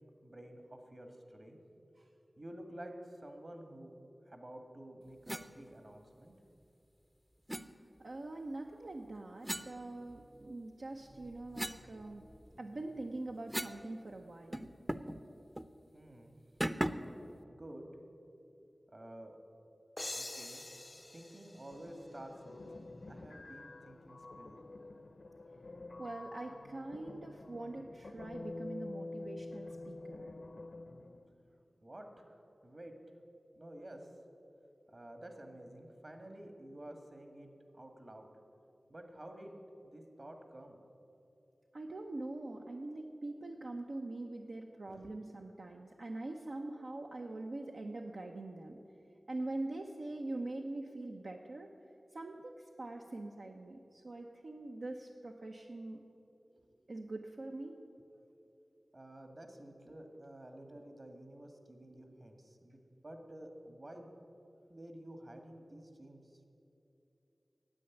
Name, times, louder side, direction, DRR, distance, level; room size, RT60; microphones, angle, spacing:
voice 1, 0.2-1.6 2.4-3.9 4.3-6.3 15.9-16.3 17.5-17.9 18.9-19.4 20.1-20.6 21.1-22.6 23.1-24.6 31.8-32.3 32.6-32.9 33.5-34.1 34.9-37.5 37.7-38.3 38.9-39.6 39.8-40.8 44.9-45.1 56.5-56.7 58.9-64.1 64.7-66.2, right 1 dB, 50° right, 5 dB, 1.8 m, -51 dB
sound 1, 5.3-5.5 7.5-7.7 9.4-10.5 11.0-13.9 14.1-14.2 14.5-15.2 15.5-15.7 16.6-17.2, equal, 10° right, 0.6 m, -40 dB
voice 2, 8.0-12.2 12.6-14.7 26.0-30.3 41.7-48.8 49.3-51.7 52.1-56.0 56.9-57.8, right 2 dB, 75° right, 2 dB, 0.7 m, -43 dB
sound 2, 20.0-22.6, left 1 dB, 35° left, 0.4 m, -46 dB
sound 3, 21.7-31.2, left 2 dB, 80° left, 0.7 m, -48 dB
9.9 x 8.0 x 9.7 m, 2.8 s
wide cardioid pair, 45°, 0 cm